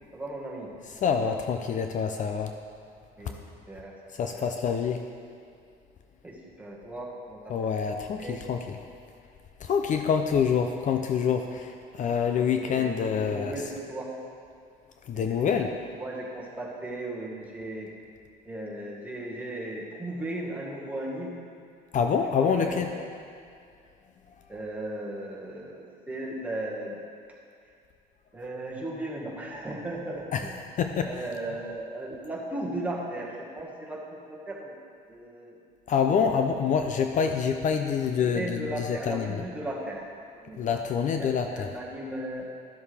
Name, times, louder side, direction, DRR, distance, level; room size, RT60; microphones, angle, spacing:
voice 1, 0.1-1.4 3.2-3.4 3.7-4.0 4.3-4.5 6.2-8.4 12.4-14.1 15.1-15.7 16.0-17.9 18.4-21.3 22.3-22.8 24.5-27.0 28.3-30.6 31.0-34.7 35.1-35.6 36.0-36.5 38.2-40.8 41.2-42.5, right 1 dB, 10° right, -4 dB, 1.7 m, -37 dB
voice 2, 1.0-2.5 4.1-5.0 7.5-8.8 9.6-13.5 15.1-15.7 21.9-22.9 30.3-30.4 30.8-31.1 35.9-39.4 40.6-41.7, left 7 dB, 50° left, 5 dB, 0.5 m, -26 dB
12.5 x 7.1 x 3.4 m, 2.4 s
cardioid pair, 110°, 17 cm